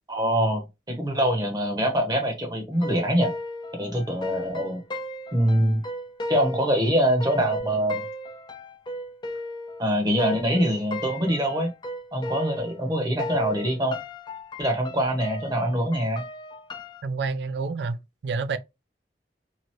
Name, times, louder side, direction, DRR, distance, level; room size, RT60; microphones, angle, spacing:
voice 1, 0.1-3.3 3.7-4.8 5.3-5.8 6.3-8.0 9.8-11.7 12.1-14.0 14.6-16.2, equal, 25° right, 0.9 m, -24 dB
sound 1, 2.7-12.9 13.2-17.0, left 1 dB, 25° left, 0.4 m, -36 dB
voice 2, 17.0-18.6, right 4 dB, 65° right, 0.4 m, -29 dB
2.9 x 2.5 x 2.9 m
head